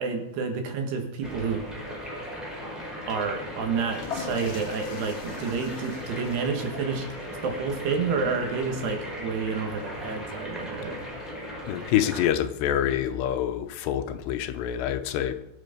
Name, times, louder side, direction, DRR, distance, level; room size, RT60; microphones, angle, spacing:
voice 1, 0.0-1.7 3.1-7.1 7.4-11.1, right 5 dB, 70° right, 4 dB, 3.7 m, -29 dB
sound 1, 1.2-12.3, equal, ahead, 5.0 m, -38 dB
sound 2, 3.7-10.5, left 6 dB, 55° left, 1.8 m, -43 dB
voice 2, 11.7-15.4, left 10 dB, 80° left, 9 dB, 2.9 m, -26 dB
22.0 x 8.1 x 5.2 m, 0.93 s
omnidirectional pair, 5.0 m